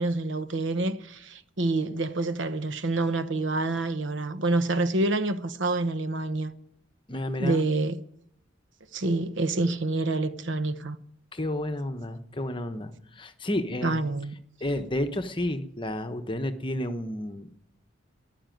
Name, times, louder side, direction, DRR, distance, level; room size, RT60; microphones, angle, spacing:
voice 1, 0.0-6.5 7.4-8.0 8.9-11.0 13.8-14.3, right 2 dB, 65° right, 1.0 m, -27 dB
voice 2, 7.1-7.6 11.3-14.0 14.6-17.6, left 1 dB, 25° left, 1.0 m, -31 dB
14.5 x 11.0 x 9.1 m
head